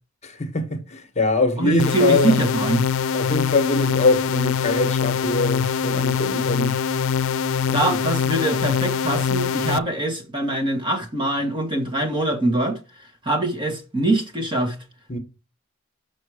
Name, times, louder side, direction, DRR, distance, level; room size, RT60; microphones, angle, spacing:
voice 1, 0.2-2.4 3.1-6.8 7.7-7.8 15.1-15.2, left 3 dB, 35° left, 1.3 m, -23 dB
voice 2, 1.6-2.9 7.7-12.8 13.2-14.7, right 2 dB, 25° right, 1.5 m, -23 dB
sound 1, 1.8-9.8, left 6 dB, 90° left, 0.4 m, -23 dB
6.2 x 6.2 x 4.8 m
head